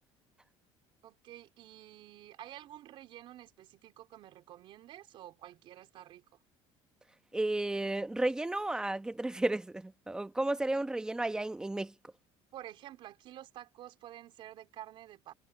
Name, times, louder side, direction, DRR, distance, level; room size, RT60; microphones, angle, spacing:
voice 1, 1.0-6.3 12.5-15.3, right 13 dB, 50° right, 3.9 m, -50 dB
voice 2, 7.3-11.9, right 2 dB, 5° right, 1.1 m, -33 dB
cardioid pair, 160°, 11 cm